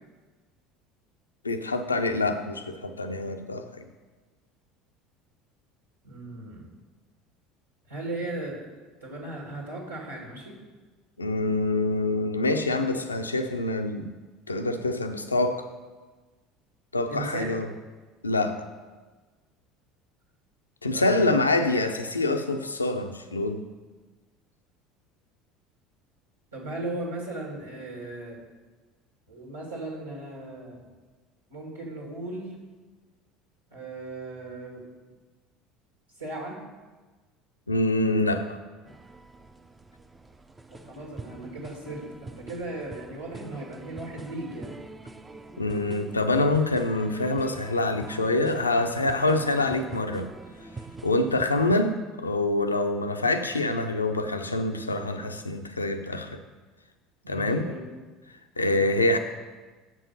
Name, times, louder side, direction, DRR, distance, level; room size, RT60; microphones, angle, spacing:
voice 1, 1.4-3.9 11.2-14.1 14.5-15.7 16.9-17.7 18.2-18.7 20.8-23.6 37.7-38.6 45.6-50.3 51.0-56.4 57.3-57.7 58.6-59.2, left 2 dB, 90° left, 7 dB, 0.5 m, -26 dB
voice 2, 6.0-6.7 7.9-8.6 9.0-10.6 17.1-17.5 20.9-21.3 26.5-28.4 29.3-30.8 31.5-32.5 33.7-34.8 36.2-36.6 40.8-44.7 57.2-57.8 58.7-59.0, right 2 dB, 90° right, -4 dB, 2.2 m, -37 dB
sound 1, 38.9-51.8, right 3 dB, 15° right, 0.6 m, -44 dB
7.6 x 6.0 x 5.5 m, 1.3 s
figure-of-eight pair, 65°, 0 cm